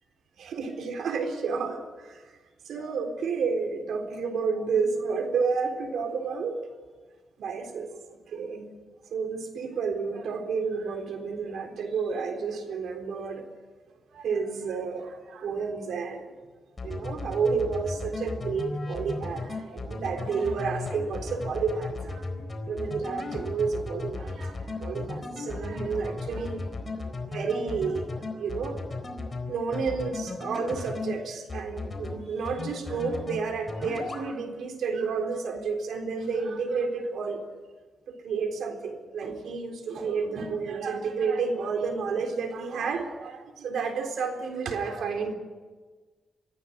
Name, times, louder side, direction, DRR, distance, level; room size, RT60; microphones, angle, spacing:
voice 1, 0.4-2.3 2.7-6.6 7.4-8.0 8.3-8.7 9.1-13.5 14.1-16.3 16.8-22.4 22.7-26.7 27.3-28.8 29.5-37.5 38.1-45.3, right 5 dB, 90° right, 3 dB, 3.8 m, -31 dB
sound 1, 16.8-31.1 31.5-32.1 32.5-33.4 33.7-34.2, left 3 dB, 30° left, 4.0 m, -35 dB
23.5 x 15.5 x 9.9 m, 1.4 s
cardioid pair, 110°, 0 cm